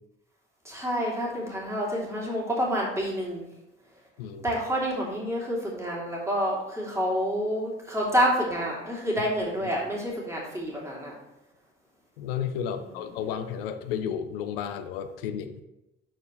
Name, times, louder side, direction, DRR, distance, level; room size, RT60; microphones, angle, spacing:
voice 1, 0.6-3.5 4.4-11.1, equal, 10° right, -4 dB, 2.7 m, -28 dB
voice 2, 12.2-15.6, left 8 dB, 70° left, 8 dB, 0.7 m, -32 dB
13.5 x 4.4 x 3.1 m, 0.95 s
figure-of-eight pair, 45°, 30 cm